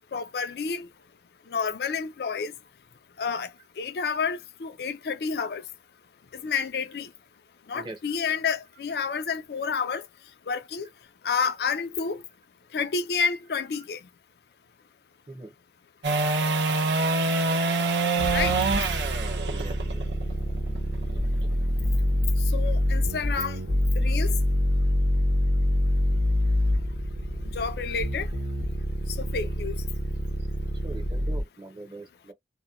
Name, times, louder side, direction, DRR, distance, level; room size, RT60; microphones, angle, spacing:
voice 1, 0.1-0.9 1.5-2.5 3.2-3.5 3.8-5.6 6.3-7.1 7.7-10.0 10.5-10.9 11.2-12.2 12.7-14.0 18.3-18.6 22.5-23.6 24.0-24.3 27.5-28.3 29.2-29.7, left 5 dB, 60° left, 0.4 m, -29 dB
sound 1, 16.0-22.2 28.7-28.8, right 3 dB, 80° right, 0.7 m, -26 dB
sound 2, 18.2-31.4, equal, 55° right, 0.9 m, -26 dB
voice 2, 19.5-20.1 21.1-21.5 29.4-29.5 30.8-32.3, right 2 dB, 25° right, 0.7 m, -43 dB
2.8 x 2.1 x 2.4 m
head